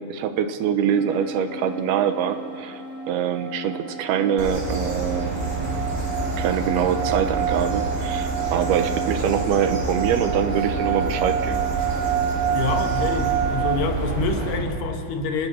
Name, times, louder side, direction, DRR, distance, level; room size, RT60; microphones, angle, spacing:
voice 1, 0.0-5.5 6.4-11.6, right 8 dB, 75° right, 9 dB, 2.9 m, -24 dB
sound 1, 0.9-13.8, equal, 60° left, 4.7 m, -39 dB
sound 2, 1.5-1.6 2.0-2.3 2.7-13.8, right 10 dB, 55° right, 1.7 m, -29 dB
sound 3, 4.4-14.6, right 2 dB, 15° right, 7.4 m, -28 dB
voice 2, 12.5-15.5, left 3 dB, 75° left, 5 dB, 3.6 m, -27 dB
30.0 x 20.0 x 6.3 m, 2.4 s
omnidirectional pair, 4.7 m